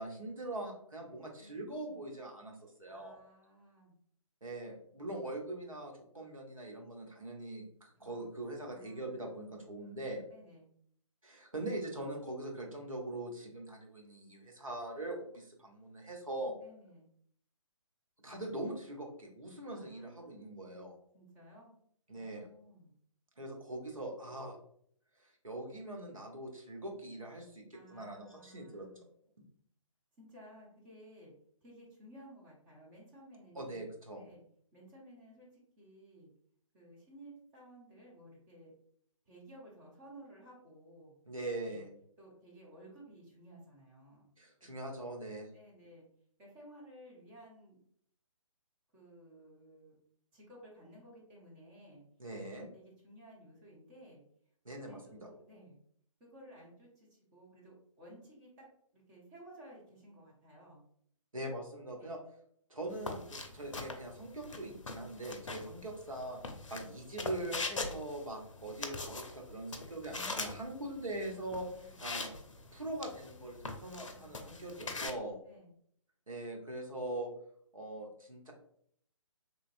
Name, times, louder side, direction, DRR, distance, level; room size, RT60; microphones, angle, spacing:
voice 1, 0.0-3.2 4.4-10.2 11.2-16.6 18.2-20.9 22.1-22.5 23.4-24.6 25.2-29.0 29.4-29.5 33.5-34.2 41.3-41.9 44.4-45.5 52.2-52.7 54.6-55.3 61.3-62.2 62.7-66.4 66.7-71.7 72.0-72.3 72.7-75.4 76.3-77.3 77.7-78.5, right 1 dB, 80° right, 1 dB, 0.9 m, -42 dB
voice 2, 1.4-2.1 2.9-3.9 8.0-8.3 8.6-9.4 10.3-10.7 16.6-17.1 19.6-20.5 21.1-21.7 22.1-22.9 27.7-29.0 30.2-31.3 31.6-33.9 34.2-34.4 34.7-36.3 36.7-38.7 39.2-41.1 41.6-41.9 42.2-44.3 44.6-44.7 45.5-46.0 46.4-47.8 48.9-49.9 50.3-52.0 52.5-54.2 54.8-55.8 56.2-58.7 58.9-60.8 61.9-62.2 65.6-65.8 71.7-72.0 73.8-74.7 75.5-75.7, right 1 dB, 10° right, -4 dB, 0.5 m, -56 dB
sound 1, 62.9-75.1, left 3 dB, 65° left, 0.5 m, -43 dB
3.3 x 2.6 x 2.5 m, 0.66 s
figure-of-eight pair, 140°, 17 cm